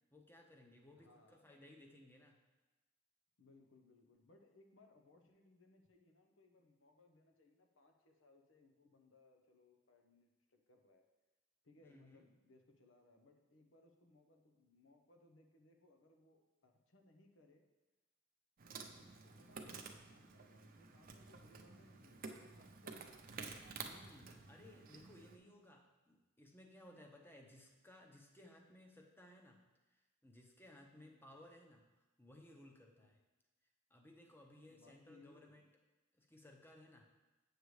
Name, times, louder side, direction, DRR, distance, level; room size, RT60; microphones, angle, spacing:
voice 1, 0.1-2.4 11.8-12.2 23.7-29.6 29.9-31.8 32.2-33.2 33.9-35.7 36.1-37.1, left 1 dB, 10° left, 2 dB, 0.8 m, -61 dB
voice 2, 0.9-1.5 3.4-11.0 11.6-17.6 18.8-23.2 30.8-31.2 33.0-33.2 34.7-35.7, left 2 dB, 90° left, 4 dB, 0.9 m, -68 dB
Insect, 18.6-25.4, right 4 dB, 50° right, 0.6 m, -52 dB
8.0 x 6.6 x 3.2 m, 1.1 s
head